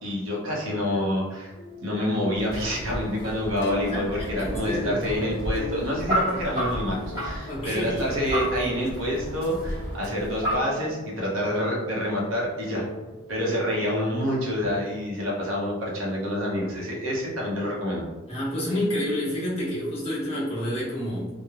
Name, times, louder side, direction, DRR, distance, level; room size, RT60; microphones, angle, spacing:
voice 1, 0.0-1.5 1.8-12.9 13.3-18.0, equal, 85° right, -3 dB, 0.8 m, -27 dB
sound 1, 1.6-15.6, left 2 dB, 55° left, 0.4 m, -42 dB
sound 2, 2.3-10.6, equal, 15° right, 1.3 m, -32 dB
voice 2, 3.9-5.0 7.5-8.1 18.3-21.3, left 1 dB, 30° left, -7 dB, 0.9 m, -29 dB
3.0 x 2.1 x 2.4 m, 1.2 s
head